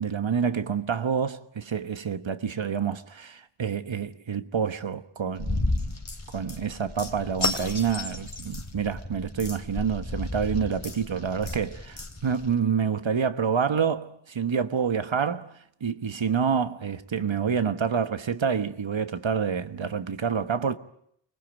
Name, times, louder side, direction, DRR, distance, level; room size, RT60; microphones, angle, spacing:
voice 1, 0.0-5.9 6.3-11.7 12.2-15.5 15.8-20.8, right 6 dB, 70° right, 1.3 m, -27 dB
sound 1, 5.4-12.6, left 2 dB, 35° left, 3.5 m, -33 dB
24.5 x 20.0 x 9.2 m
wide cardioid pair, 50°, 47 cm